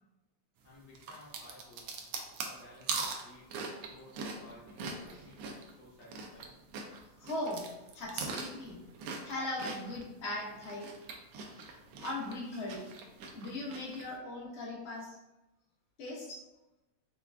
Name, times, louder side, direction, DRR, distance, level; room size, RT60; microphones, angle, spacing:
voice 1, 0.6-1.9 2.4-6.6, left 1 dB, 50° left, -5 dB, 1.0 m, -56 dB
sound 1, 0.9-6.5 6.7-10.1 10.5-14.0, right 4 dB, 75° right, 1.3 m, -41 dB
voice 2, 7.2-7.7 7.9-8.8 9.2-10.9 12.0-12.9 13.3-15.2 16.0-16.4, left 1 dB, 80° left, -5 dB, 0.5 m, -39 dB
5.7 x 2.4 x 2.3 m, 1.0 s
omnidirectional pair, 2.4 m